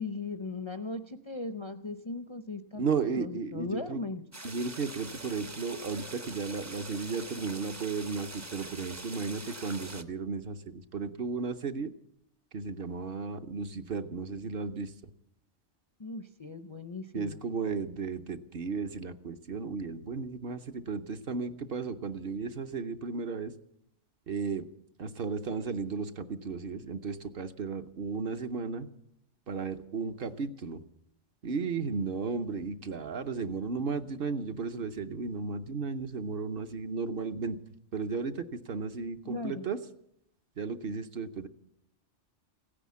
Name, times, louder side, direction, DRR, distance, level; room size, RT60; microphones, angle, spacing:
voice 1, 0.0-4.3 16.0-17.4 39.2-39.7, left 3 dB, 35° left, 8 dB, 0.5 m, -38 dB
voice 2, 2.8-4.0 4.4-11.9 12.5-14.9 17.1-23.5 24.3-24.6 25.0-28.9 29.5-30.8 31.4-37.6 37.9-39.8 40.6-41.5, right 4 dB, 55° right, 8 dB, 1.0 m, -34 dB
sound 1, 4.3-10.0, right 2 dB, 20° right, 0.6 m, -44 dB
16.0 x 9.9 x 8.4 m, 0.76 s
omnidirectional pair, 1.2 m